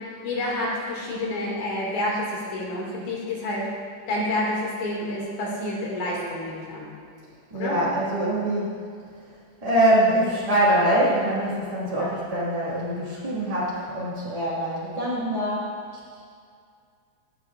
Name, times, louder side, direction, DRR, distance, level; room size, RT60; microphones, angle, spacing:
voice 1, 0.2-3.7 4.1-6.9 7.5-7.8 12.0-12.1, left 1 dB, 70° left, -4 dB, 3.3 m, -29 dB
voice 2, 7.5-8.8 9.2-9.3 9.6-16.2, right 1 dB, 35° right, -8 dB, 0.6 m, -24 dB
16.0 x 7.7 x 2.4 m, 2.3 s
omnidirectional pair, 3.6 m